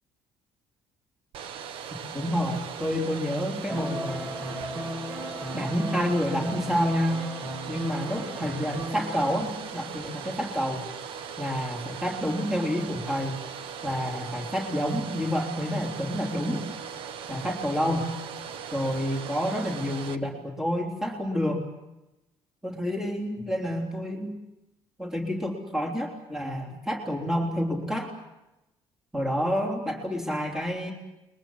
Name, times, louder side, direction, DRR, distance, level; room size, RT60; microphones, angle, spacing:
Domestic sounds home sounds, 1.3-20.2, right 7 dB, 65° right, 1.5 m, -39 dB
voice 1, 2.1-4.4 5.5-7.3 7.7-10.9 11.4-13.5 13.8-16.6 17.3-18.1 18.7-21.7 22.6-24.3 25.0-28.1 29.1-30.9, equal, 5° right, 0 dB, 3.6 m, -29 dB
sound 1, 3.7-9.4, equal, 25° right, 2.8 m, -35 dB
30.0 x 22.0 x 7.3 m, 0.96 s
cardioid pair, 150°, 10 cm